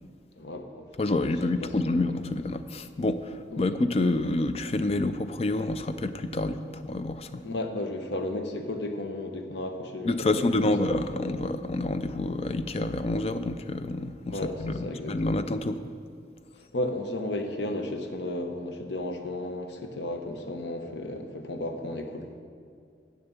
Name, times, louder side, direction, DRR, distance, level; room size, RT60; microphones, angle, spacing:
voice 1, 0.4-1.1 1.6-1.7 3.5-3.7 7.4-10.5 14.3-15.4 16.6-22.4, left 1 dB, 85° left, 5 dB, 0.9 m, -34 dB
voice 2, 1.0-7.4 10.0-15.8, left 2 dB, 35° left, 10 dB, 0.4 m, -28 dB
7.8 x 7.0 x 6.9 m, 2.2 s
head